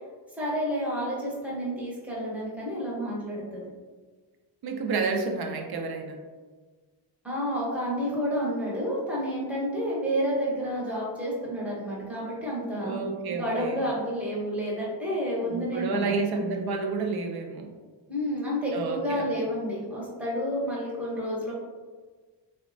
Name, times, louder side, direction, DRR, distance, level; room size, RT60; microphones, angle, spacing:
voice 1, 0.4-3.6 7.2-13.0 13.3-16.1 18.1-21.5, equal, 5° right, -6 dB, 0.7 m, -30 dB
voice 2, 4.6-6.2 12.8-13.8 15.5-17.7 18.7-19.3, right 4 dB, 60° right, 3 dB, 0.5 m, -30 dB
3.8 x 2.1 x 2.5 m, 1.4 s
wide cardioid pair, 165°, 44 cm